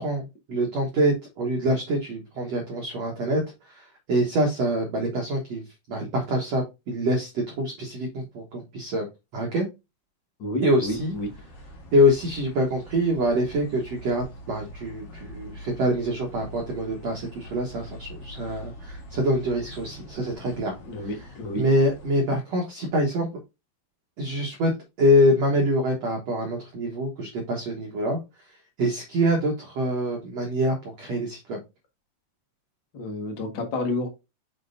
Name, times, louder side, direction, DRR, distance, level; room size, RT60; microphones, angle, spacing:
voice 1, 0.0-5.6 5.9-9.0 9.3-9.7 10.6-11.1 11.9-20.8 21.6-23.3 24.2-24.7 25.0-28.2 28.8-31.6, equal, 75° right, 0 dB, 1.5 m, -25 dB
voice 2, 10.4-11.3 20.8-21.6 32.9-34.1, left 2 dB, 85° left, 3 dB, 1.0 m, -30 dB
sound 1, 10.8-22.2, equal, 55° left, 2.5 m, -44 dB
6.2 x 6.0 x 2.6 m, 0.24 s
omnidirectional pair, 5.1 m